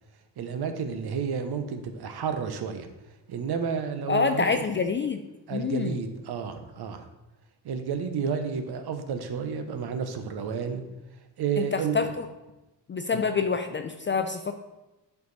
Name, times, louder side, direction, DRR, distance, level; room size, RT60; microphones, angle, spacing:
voice 1, 0.4-2.9 3.3-4.6 5.5-7.1 7.6-10.8 11.4-12.0 13.1-13.2, right 6 dB, 60° right, 8 dB, 0.9 m, -31 dB
voice 2, 4.1-5.2 5.5-6.0 11.6-12.3 12.9-14.5, left 5 dB, 30° left, 7 dB, 0.4 m, -27 dB
8.0 x 4.8 x 4.0 m, 1.0 s
cardioid pair, 85°, 43 cm